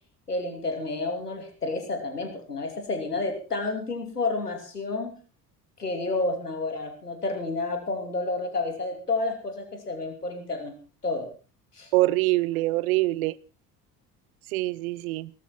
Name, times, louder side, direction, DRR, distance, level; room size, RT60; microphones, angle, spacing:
voice 1, 0.3-5.2 5.8-10.7 11.0-11.3 11.8-11.9, left 3 dB, 90° left, 3.0 m, -30 dB
voice 2, 11.9-13.4 14.5-15.3, right 19 dB, 65° right, 0.9 m, -24 dB
18.0 x 13.5 x 4.4 m
figure-of-eight pair, 60°, 45 cm